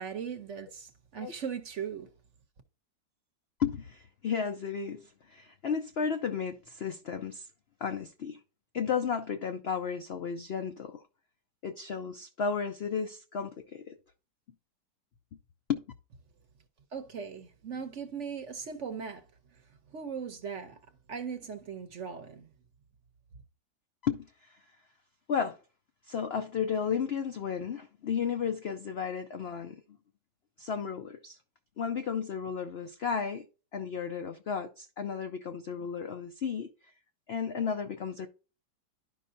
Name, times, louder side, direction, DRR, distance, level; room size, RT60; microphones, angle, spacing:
voice 1, 0.0-2.1 16.9-19.3 19.9-20.8 21.1-22.5, right 6 dB, 55° right, 0.9 m, -39 dB
voice 2, 3.6-7.5 7.8-8.4 8.7-11.0 11.6-14.0 15.7-15.8 24.0-24.6 25.3-25.6 26.1-29.8 30.6-31.4 31.8-33.5 33.7-36.7 37.3-38.3, left 6 dB, 85° left, 0.5 m, -33 dB
11.5 x 5.5 x 2.6 m
omnidirectional pair, 1.9 m